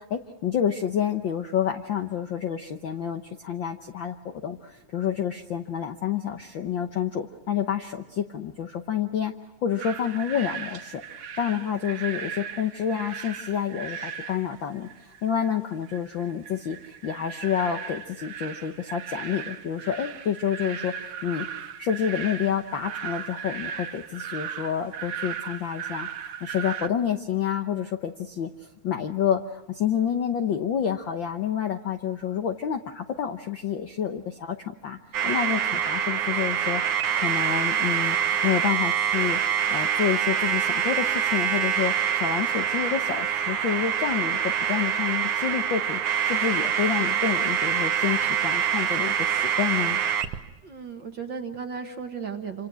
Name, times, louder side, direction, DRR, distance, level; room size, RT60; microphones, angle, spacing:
voice 1, 0.0-9.3 9.6-11.0 11.4-20.9 21.2-28.5 28.8-35.0 35.2-39.4 39.7-44.4 44.7-50.0, left 8 dB, 65° left, 5 dB, 1.2 m, -29 dB
sound 1, 9.8-26.9, right 7 dB, 65° right, 2.0 m, -37 dB
sound 2, 35.1-50.4, right 9 dB, 90° right, 2.8 m, -25 dB
voice 2, 50.6-52.7, right 6 dB, 50° right, 6 dB, 1.7 m, -35 dB
28.0 x 26.0 x 6.2 m, 1.0 s
omnidirectional pair, 3.4 m